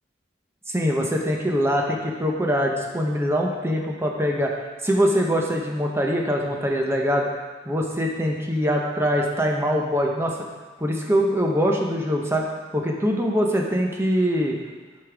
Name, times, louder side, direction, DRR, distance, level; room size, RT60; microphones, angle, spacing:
voice 1, 0.7-4.5 4.8-7.3 7.6-10.3 10.8-12.5 12.7-14.6, equal, 15° right, 0 dB, 0.9 m, -23 dB
8.4 x 5.4 x 3.5 m, 1.4 s
head